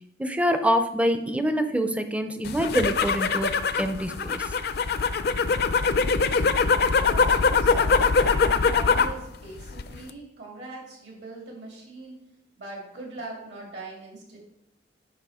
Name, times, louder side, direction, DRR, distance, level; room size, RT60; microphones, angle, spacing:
voice 1, 0.2-4.6, equal, 5° right, 8 dB, 0.5 m, -26 dB
sound 1, 2.4-9.2 9.5-10.1, left 4 dB, 55° left, 0.4 m, -23 dB
voice 2, 7.1-12.2 12.6-14.4, right 2 dB, 75° right, -2 dB, 2.8 m, -41 dB
9.1 x 5.5 x 3.6 m, 0.83 s
head